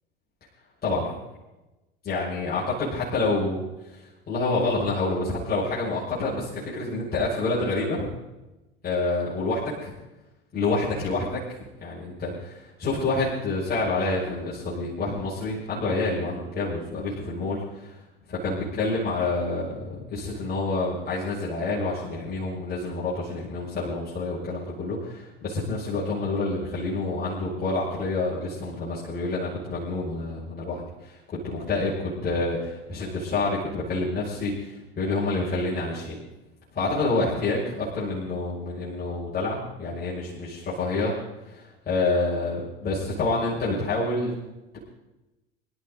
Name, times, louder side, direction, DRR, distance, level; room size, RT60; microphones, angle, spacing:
voice 1, 0.8-1.1 2.0-3.6 3.9-8.1 8.8-9.9 10.5-11.4 11.8-17.9 18.3-36.2 36.7-41.1 41.4-44.3, left 2 dB, 30° left, -8 dB, 6.6 m, -28 dB
25.5 x 13.0 x 4.0 m, 1.0 s
figure-of-eight pair, 70°, 30 cm